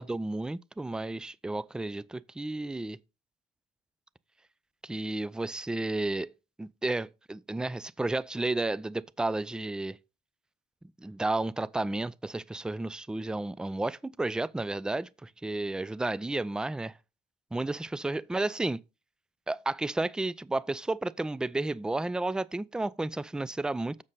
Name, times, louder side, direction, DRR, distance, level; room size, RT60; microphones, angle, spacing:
voice 1, 0.0-3.0 4.8-6.3 6.6-10.0 11.0-16.9 17.5-18.8 19.5-24.0, right 2 dB, 5° right, 0.3 m, -32 dB
7.3 x 6.3 x 4.0 m
cardioid pair, 110°, 17 cm